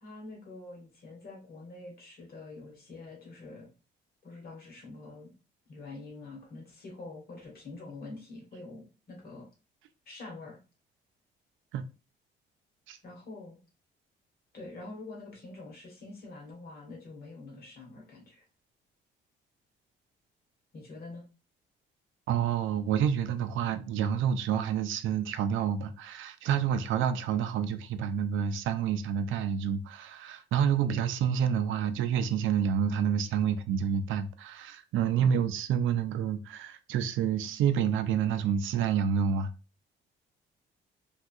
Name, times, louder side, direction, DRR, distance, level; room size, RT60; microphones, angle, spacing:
voice 1, 0.0-3.7 4.2-5.3 5.7-9.5 10.0-10.6 13.0-13.6 14.5-18.4 20.7-21.2 35.1-35.5, left 2 dB, 50° left, 1.5 m, -46 dB
voice 2, 22.3-39.5, right 8 dB, 80° right, 0.4 m, -28 dB
3.3 x 2.4 x 2.6 m
cardioid pair, 90°, 20 cm